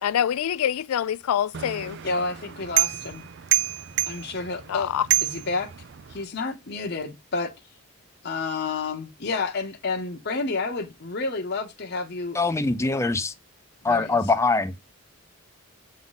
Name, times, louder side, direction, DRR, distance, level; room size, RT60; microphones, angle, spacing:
voice 1, 0.0-2.0 4.7-5.1, left 9 dB, 80° left, 0.3 m, -25 dB
sound 1, 1.5-6.2, right 14 dB, 50° right, 0.4 m, -28 dB
voice 2, 2.0-3.2 4.1-4.9 5.2-5.7 6.1-7.5 8.2-12.4 13.8-14.2, left 3 dB, 50° left, 0.9 m, -30 dB
voice 3, 12.3-13.3 13.8-14.7, left 3 dB, 15° left, 0.6 m, -23 dB
8.2 x 3.7 x 4.0 m
head